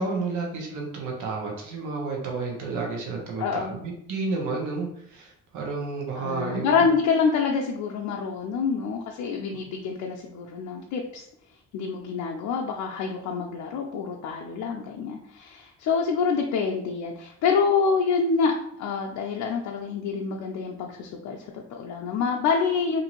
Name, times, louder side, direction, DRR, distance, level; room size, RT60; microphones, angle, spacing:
voice 1, 0.0-6.9, right 3 dB, 80° right, -1 dB, 0.9 m, -31 dB
voice 2, 3.4-3.8 6.2-11.2 11.7-23.0, left 5 dB, 75° left, 0 dB, 0.5 m, -26 dB
2.6 x 2.5 x 2.9 m, 0.71 s
cardioid pair, 90°, 30 cm